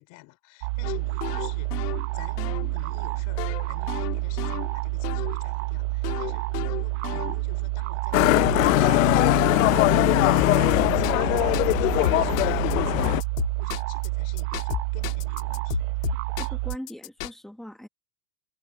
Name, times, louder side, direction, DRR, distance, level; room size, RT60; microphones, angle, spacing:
voice 1, 0.0-2.4 2.7-9.5 13.6-15.9, left 23 dB, 40° left, 3.1 m, -49 dB
sound 1, 0.6-16.8, right 22 dB, 45° right, 0.9 m, -29 dB
sound 2, 0.8-5.4 6.0-7.7 10.4-11.7 12.0-12.7 13.0-14.1 14.4-17.3, left 17 dB, 75° left, 2.2 m, -33 dB
Motorcycle, 8.1-13.2, left 21 dB, 55° left, 0.7 m, -21 dB
voice 2, 16.1-17.9, left 1 dB, ahead, 1.3 m, -41 dB
supercardioid pair, 155°, 47 cm